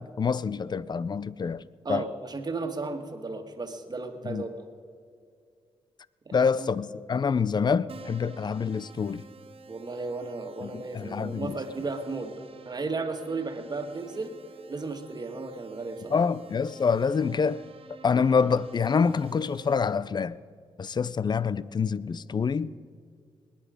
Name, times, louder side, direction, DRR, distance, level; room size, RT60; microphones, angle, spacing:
voice 1, 0.0-1.6 1.9-2.0 4.2-4.4 6.3-9.3 10.6-11.6 16.1-17.6 18.0-20.4 20.8-22.7, left 5 dB, 40° left, 0.5 m, -26 dB
voice 2, 1.8-4.6 6.3-6.7 9.7-14.4 14.7-16.3, right 3 dB, 40° right, 1.8 m, -34 dB
Keyboard (musical), 7.9-19.8, right 4 dB, 60° right, 1.2 m, -50 dB
20.0 x 10.0 x 5.1 m
cardioid pair, 65°, 11 cm